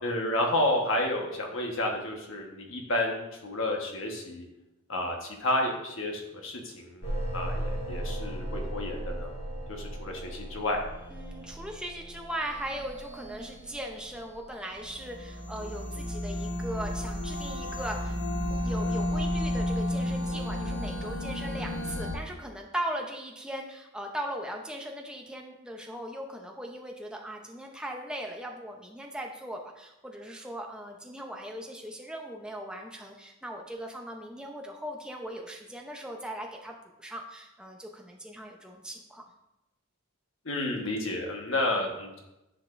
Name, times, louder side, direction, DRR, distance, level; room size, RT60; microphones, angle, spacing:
voice 1, 0.0-4.5 4.9-9.3 9.7-10.8 40.4-42.2, left 1 dB, 60° left, 1 dB, 1.3 m, -31 dB
sound 1, 7.0-22.1, equal, 45° left, 2.2 m, -34 dB
voice 2, 11.1-18.2 18.5-39.3, right 1 dB, 5° right, 1 dB, 0.7 m, -39 dB
10.0 x 5.2 x 2.6 m, 0.93 s
head